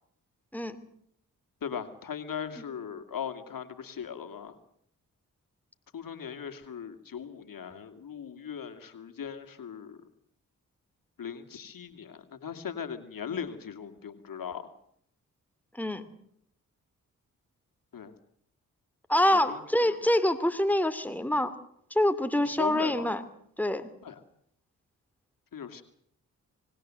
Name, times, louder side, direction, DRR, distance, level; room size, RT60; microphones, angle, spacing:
voice 1, 1.6-4.5 5.9-10.0 11.2-14.7 17.9-18.1 19.3-20.0 22.4-23.1 24.0-24.2 25.5-25.8, left 7 dB, 65° left, 7 dB, 2.6 m, -39 dB
voice 2, 15.7-16.1 19.1-21.5 21.9-23.2 23.6-23.9, left 1 dB, 5° left, 9 dB, 2.7 m, -26 dB
25.0 x 20.5 x 7.7 m, 0.69 s
supercardioid pair, 45°, 36 cm